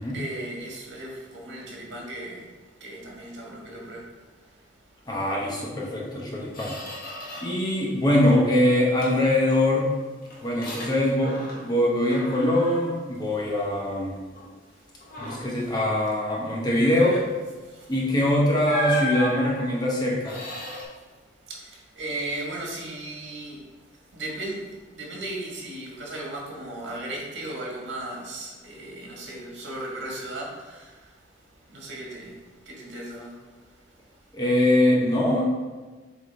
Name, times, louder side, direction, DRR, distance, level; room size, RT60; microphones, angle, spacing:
voice 1, 0.0-5.1 10.3-10.5 14.6-14.9 15.3-15.5 16.8-17.2 17.6-17.9 20.8-34.1, right 1 dB, 70° right, -3 dB, 1.9 m, -37 dB
voice 2, 5.1-6.8 7.4-9.9 10.4-14.2 15.2-17.2 17.9-20.4 34.3-35.4, left 1 dB, 20° left, -3 dB, 0.9 m, -23 dB
Squeak, 5.7-5.9 6.2-7.7 8.0-8.6 9.0-11.8 12.1-13.9 14.4-14.6 15.0-15.6 17.7-17.9 18.6-20.8, left 1 dB, 50° left, 1.5 m, -36 dB
7.6 x 3.7 x 3.7 m, 1.3 s
head